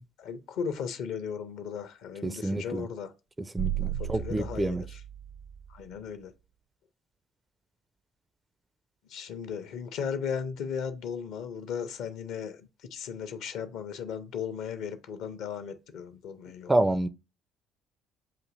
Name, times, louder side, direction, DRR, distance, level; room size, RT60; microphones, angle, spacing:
voice 1, 0.2-3.1 4.0-5.0 5.7-6.3 9.1-17.0, left 7 dB, 60° left, 0.6 m, -36 dB
voice 2, 2.2-2.8 3.5-4.8 16.7-17.1, right 1 dB, 15° right, 0.4 m, -28 dB
sound 1, 3.6-6.0, right 11 dB, 55° right, 0.6 m, -35 dB
7.3 x 2.6 x 2.5 m
figure-of-eight pair, 50°, 0 cm